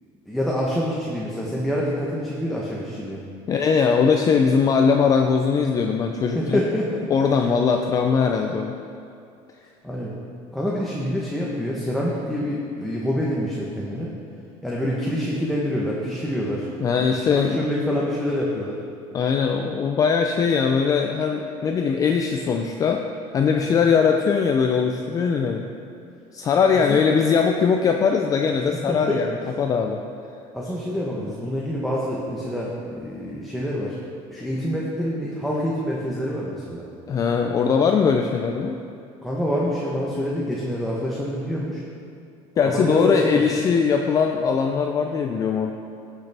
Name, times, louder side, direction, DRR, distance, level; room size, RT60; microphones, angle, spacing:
voice 1, 0.3-3.2 6.3-7.1 9.8-10.1 10.5-14.1 14.6-16.7 17.0-18.8 26.7-27.0 28.9-29.2 30.5-34.0 34.3-36.9 39.2-41.8 42.6-43.4, equal, ahead, -5 dB, 0.9 m, -26 dB
voice 2, 3.5-6.6 7.1-8.7 16.8-17.6 19.1-23.0 23.3-25.6 26.3-29.3 29.6-30.0 37.1-38.8 42.6-45.7, left 6 dB, 25° left, 3 dB, 0.4 m, -20 dB
15.5 x 6.7 x 3.4 m, 2.5 s
cardioid pair, 160°, 13 cm